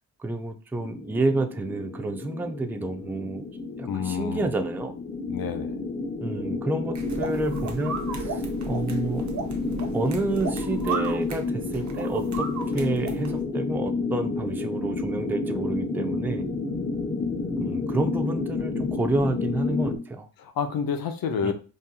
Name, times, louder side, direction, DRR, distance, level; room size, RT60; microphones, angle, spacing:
voice 1, 0.2-3.4 3.8-4.9 6.2-9.3 9.9-16.4 17.6-20.3 21.4-21.5, right 2 dB, 5° right, 7 dB, 0.3 m, -29 dB
sound 1, 0.8-20.0, left 3 dB, 20° left, 0.7 m, -30 dB
voice 2, 3.9-4.5 5.3-5.8 20.4-21.5, left 6 dB, 60° left, 8 dB, 0.6 m, -29 dB
sound 2, 6.9-13.4, right 5 dB, 45° right, 0.7 m, -35 dB
3.8 x 2.6 x 2.2 m, 0.35 s
cardioid pair, 65°, 40 cm